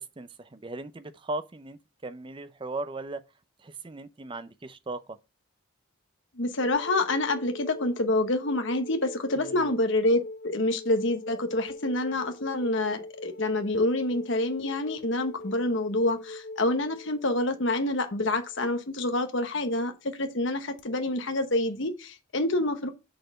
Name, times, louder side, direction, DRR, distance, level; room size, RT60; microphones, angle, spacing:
voice 1, 0.0-3.2 3.6-5.2 9.4-9.8, right 2 dB, 25° right, 0.5 m, -38 dB
voice 2, 6.4-22.9, left 2 dB, 60° left, 1.0 m, -27 dB
sound 1, 6.6-19.0 20.8-20.9, left 2 dB, 40° left, 0.5 m, -42 dB
6.7 x 4.1 x 5.2 m
head